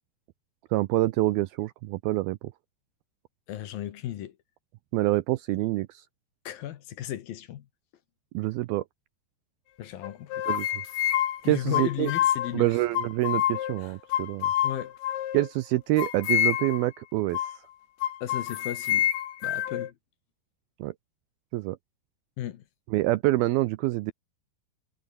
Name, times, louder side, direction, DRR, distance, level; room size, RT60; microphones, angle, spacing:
voice 1, 0.7-2.4 4.9-6.0 8.3-8.8 10.5-10.7 11.4-12.1 12.5-14.5 15.3-17.5 20.8-20.9 21.5-21.8 22.9-24.1, right 18 dB, 90° right, 2.2 m, -26 dB
voice 2, 3.5-4.4 6.4-7.7 9.8-10.4 11.4-12.7 14.6-14.9 18.2-19.1 19.4-19.9 22.4-22.6, left 12 dB, 65° left, 2.8 m, -35 dB
sound 1, 10.0-12.5 12.9-13.8 14.1-15.5 16.0-16.9 17.3-17.6 18.0-19.9, left 12 dB, 90° left, 4.3 m, -27 dB
omnidirectional pair, 5.0 m